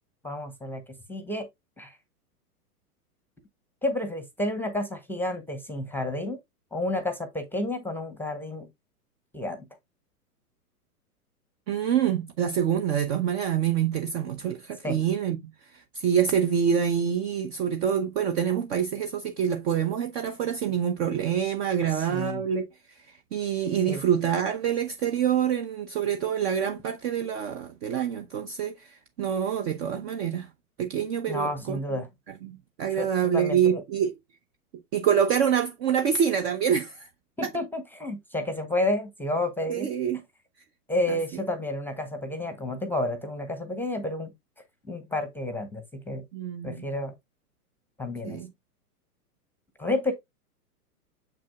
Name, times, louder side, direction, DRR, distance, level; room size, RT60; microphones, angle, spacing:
voice 1, 0.2-0.8 1.1-1.5 1.8-2.0 3.8-6.4 6.7-8.7 9.3-9.6 14.8-15.0 21.9-22.4 23.9-24.0 31.3-32.1 33.0-33.8 37.4-39.9 40.9-44.3 44.9-46.2 46.6-47.1 48.0-48.4 49.8-50.1, left 1 dB, 5° left, 0.8 m, -30 dB
voice 2, 11.7-30.5 30.8-31.8 32.3-34.1 34.9-37.1 39.7-40.2 41.1-41.4 46.3-46.9 48.2-48.5, right 8 dB, 40° right, 0.9 m, -26 dB
7.0 x 6.1 x 2.3 m
hypercardioid pair, 115°, 47 cm